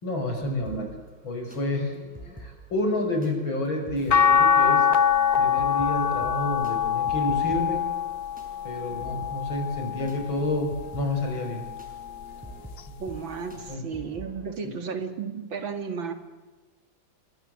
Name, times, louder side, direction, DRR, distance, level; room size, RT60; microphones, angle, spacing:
voice 1, 0.0-0.9 1.2-2.0 2.4-4.9 5.4-7.8 8.6-11.6 12.9-13.0 13.7-13.8 14.6-14.8, left 1 dB, 80° left, 3 dB, 6.4 m, -29 dB
sound 1, 0.6-14.4, right 2 dB, 5° right, 6.0 m, -47 dB
sound 2, 4.1-10.4 11.0-12.3 13.7-13.8, left 7 dB, 55° left, 1.5 m, -24 dB
voice 2, 13.0-16.1, right 6 dB, 80° right, 8 dB, 3.1 m, -33 dB
29.0 x 23.5 x 7.9 m, 1.3 s
omnidirectional pair, 2.1 m